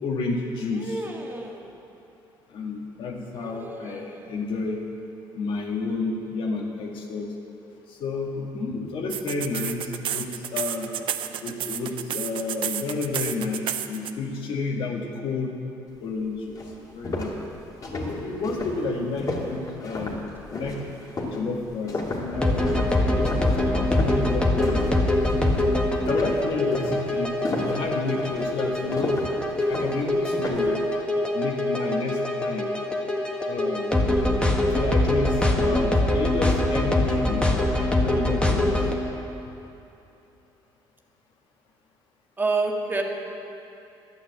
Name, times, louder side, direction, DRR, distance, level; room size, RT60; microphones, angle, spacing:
voice 1, 0.0-1.1 2.5-4.8 5.3-7.3 7.9-10.9 11.4-15.5 16.0-17.3 17.9-20.2 20.5-20.8 21.3-23.4 23.7-24.8 26.1-27.3 27.7-29.2 29.7-30.9 31.3-32.7 33.4-34.1 34.7-37.5 38.0-38.9, left 3 dB, 70° left, 0 dB, 2.1 m, -30 dB
voice 2, 0.8-1.7 3.4-4.3 37.7-38.0 42.4-43.0, right 3 dB, 20° right, 1 dB, 1.7 m, -30 dB
sound 1, 9.1-14.1, right 11 dB, 70° right, 0.6 m, -30 dB
sound 2, 16.1-16.2 16.5-25.0 25.3-25.7 26.0-30.8, left 2 dB, 40° left, 2.6 m, -33 dB
sound 3, 22.3-38.9, left 1 dB, 10° left, 1.6 m, -24 dB
11.0 x 9.2 x 8.2 m, 2.8 s
cardioid pair, 85°, 9 cm